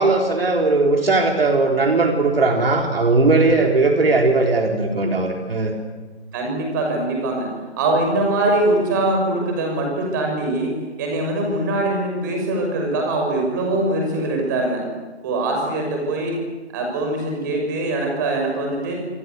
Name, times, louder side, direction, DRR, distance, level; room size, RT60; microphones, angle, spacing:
voice 1, 0.0-5.7, right 3 dB, 55° right, 3 dB, 3.9 m, -18 dB
voice 2, 6.3-7.5 7.8-14.8 15.2-16.4 16.7-18.9, right 2 dB, 15° right, 1 dB, 5.9 m, -22 dB
27.0 x 24.5 x 8.2 m, 1.3 s
hypercardioid pair, 175°, 34 cm